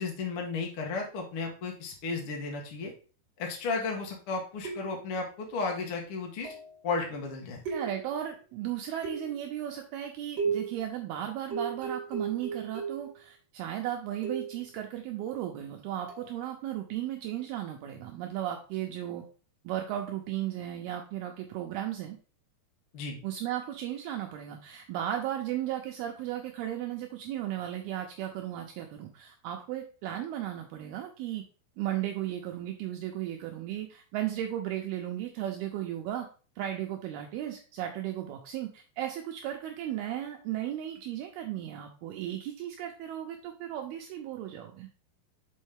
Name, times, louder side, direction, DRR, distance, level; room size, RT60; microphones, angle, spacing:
voice 1, 0.0-2.9 3.4-6.5 6.8-7.6 22.9-23.2, left 4 dB, 75° left, 1 dB, 1.2 m, -34 dB
sound 1, 4.6-5.2 6.4-6.8 7.6-8.3 9.0-9.5 10.4-10.8 11.5-13.1 14.2-14.6 16.1-16.3, right 5 dB, 65° right, 1.2 m, -35 dB
voice 2, 7.7-19.2 19.6-22.2 23.2-31.5 31.8-36.3 36.6-44.9, right 11 dB, 80° right, 3 dB, 2.3 m, -35 dB
6.3 x 5.3 x 3.5 m, 0.38 s
omnidirectional pair, 5.0 m